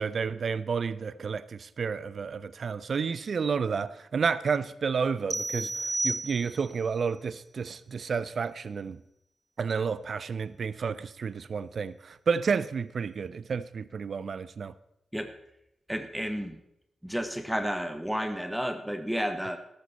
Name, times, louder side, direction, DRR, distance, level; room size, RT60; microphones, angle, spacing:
voice 1, 0.0-9.0 9.6-14.7, right 5 dB, 60° right, 17 dB, 0.5 m, -31 dB
sound 1, 5.3-6.8, right 2 dB, 25° right, 0.8 m, -32 dB
voice 2, 15.9-16.6 17.0-19.6, equal, 5° right, 8 dB, 1.3 m, -31 dB
13.5 x 12.0 x 4.2 m, 0.81 s
cardioid pair, 55°, 0 cm